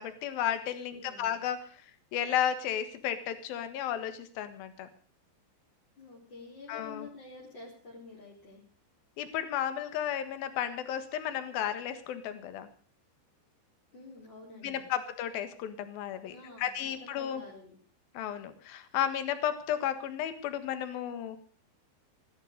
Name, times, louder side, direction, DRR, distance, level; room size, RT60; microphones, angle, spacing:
voice 1, 0.0-1.8 2.1-4.9 6.7-7.1 9.2-12.7 14.6-17.4 18.1-21.4, left 10 dB, 60° left, 10 dB, 3.0 m, -33 dB
voice 2, 0.9-1.4 6.0-8.6 13.9-14.9 16.3-17.7, left 3 dB, 25° left, -5 dB, 4.1 m, -49 dB
17.0 x 12.5 x 6.6 m, 0.43 s
omnidirectional pair, 5.4 m